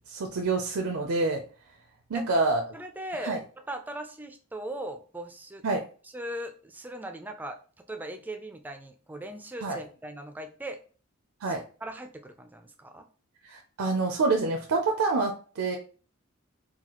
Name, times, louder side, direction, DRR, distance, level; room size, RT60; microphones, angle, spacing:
voice 1, 0.1-1.4 2.1-2.6 3.3-3.4 5.6-5.8 9.6-9.8 11.4-11.6 13.4-15.8, right 3 dB, 75° right, 2 dB, 0.5 m, -27 dB
voice 2, 2.7-3.4 3.7-5.6 6.0-7.6 7.9-10.8 11.5-13.0, right 1 dB, 10° right, 5 dB, 0.3 m, -39 dB
4.0 x 2.3 x 2.9 m, 0.39 s
head